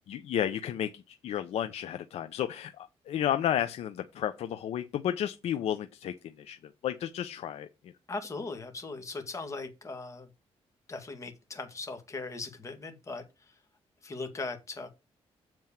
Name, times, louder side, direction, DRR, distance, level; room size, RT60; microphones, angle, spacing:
voice 1, 0.1-7.9, left 10 dB, 75° left, 0.6 m, -32 dB
voice 2, 8.1-10.3 10.9-13.2 14.0-14.9, left 3 dB, 30° left, 2.1 m, -39 dB
7.7 x 4.5 x 7.1 m
cardioid pair, 130°, 11 cm